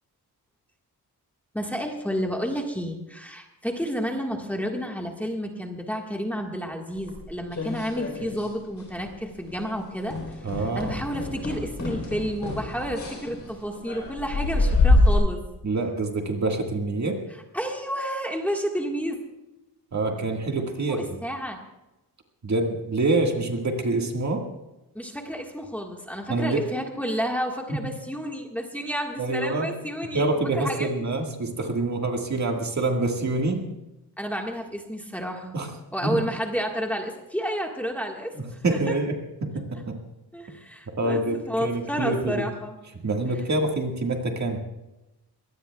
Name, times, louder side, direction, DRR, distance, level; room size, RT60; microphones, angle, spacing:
voice 1, 1.5-15.4 17.5-19.2 20.9-21.6 24.9-30.9 34.2-35.6 35.9-38.8 40.3-42.7, equal, 5° left, 1 dB, 1.6 m, -31 dB
sound 1, 7.1-8.5 8.8-9.2 9.5-9.7 10.1-15.1, left 2 dB, 45° left, 3.9 m, -25 dB
voice 2, 10.4-11.0 15.6-17.2 19.9-21.2 22.4-24.4 26.3-26.6 27.7-27.8 29.2-29.7 30.1-33.7 35.5-35.7 36.0-36.3 38.4-40.0 41.0-42.5 43.0-44.6, right 2 dB, 45° right, 2 dB, 1.8 m, -26 dB
23.0 x 18.5 x 2.3 m, 0.98 s
wide cardioid pair, 175°, 39 cm